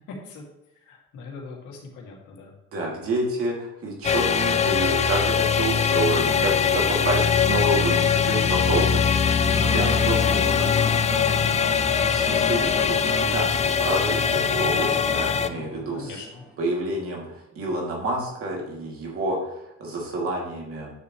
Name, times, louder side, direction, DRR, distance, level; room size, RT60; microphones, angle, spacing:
voice 1, 0.1-0.4 0.7-2.5 15.9-16.4, left 4 dB, 85° left, -1 dB, 2.5 m, -41 dB
voice 2, 2.7-8.9 9.4-11.7 12.1-16.2 16.6-20.9, right 1 dB, 50° right, -2 dB, 2.7 m, -29 dB
sound 1, 4.0-15.5, left 7 dB, 25° left, 0.4 m, -22 dB
sound 2, 7.0-16.5, right 1 dB, 5° right, 2.3 m, -42 dB
Bowed string instrument, 9.5-14.5, right 2 dB, 20° right, 1.3 m, -36 dB
9.7 x 6.8 x 3.2 m, 0.88 s
cardioid pair, 130°, 29 cm